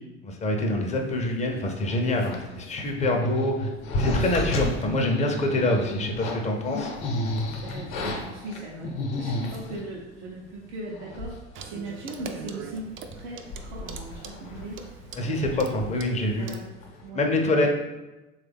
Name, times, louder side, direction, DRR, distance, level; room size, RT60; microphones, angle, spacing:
voice 1, 0.4-3.5 4.0-6.9 15.2-16.5 17.1-17.7, left 1 dB, 20° left, 2 dB, 0.6 m, -25 dB
sound 1, 1.8-9.9 10.6-10.7 10.9-11.5 11.8-11.9 12.3-12.7 13.0-16.6 16.8-17.1, left 1 dB, 55° left, 0.8 m, -32 dB
voice 2, 7.6-16.0 16.3-16.6 17.0-17.7, right 2 dB, 80° right, -5 dB, 0.6 m, -39 dB
Clock, 11.5-16.7, right 6 dB, 40° right, 0.4 m, -42 dB
3.3 x 2.4 x 3.4 m, 1.1 s
hypercardioid pair, 75°, 34 cm